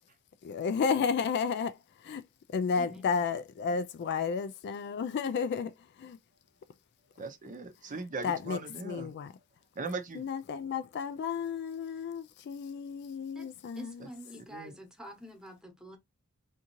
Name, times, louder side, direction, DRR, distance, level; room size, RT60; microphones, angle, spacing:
voice 1, 0.4-2.2 2.5-6.2 7.9-9.3 10.1-14.1, left 6 dB, 50° left, 0.3 m, -32 dB
voice 2, 2.7-3.2 13.3-13.5 13.7-16.0, equal, 5° right, 1.0 m, -47 dB
voice 3, 7.2-9.1 9.8-10.3 14.0-14.1 14.3-14.7, right 3 dB, 35° right, 0.6 m, -39 dB
3.6 x 2.7 x 2.9 m
head